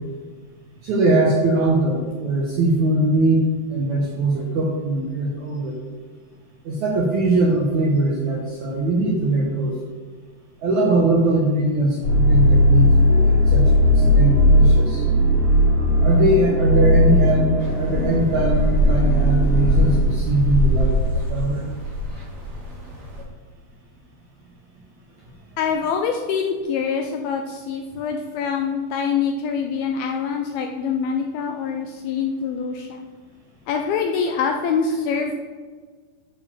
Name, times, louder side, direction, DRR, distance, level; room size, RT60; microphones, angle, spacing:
voice 1, 0.8-5.7 6.7-9.8 10.6-15.0 16.0-21.7, right 2 dB, 70° right, -3 dB, 1.8 m, -21 dB
sound 1, 12.0-20.0, equal, 50° left, 3.4 m, -17 dB
sound 2, 17.6-23.2, left 1 dB, 30° right, 2.3 m, -23 dB
voice 2, 25.6-33.1 33.7-35.4, left 6 dB, 80° left, 4 dB, 2.2 m, -25 dB
9.0 x 4.8 x 7.4 m, 1.5 s
omnidirectional pair, 4.9 m